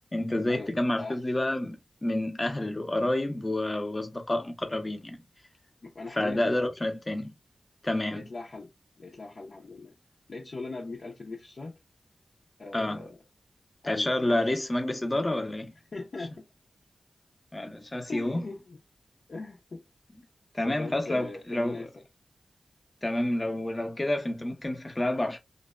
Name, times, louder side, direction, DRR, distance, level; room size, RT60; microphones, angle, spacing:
voice 1, 0.1-1.8 2.0-5.2 6.2-7.3 7.8-8.3 12.7-13.1 13.8-15.7 17.5-18.4 20.5-21.8 23.0-25.4, left 1 dB, 30° left, 0.7 m, -29 dB
voice 2, 5.8-6.4 8.1-8.7 9.0-9.9 10.3-11.8 12.6-13.2 13.8-14.5 15.9-16.5 18.1-18.8 19.3-19.8 20.6-22.0, left 3 dB, 65° left, 0.6 m, -40 dB
2.6 x 2.1 x 2.3 m
cardioid pair, 55°, 0 cm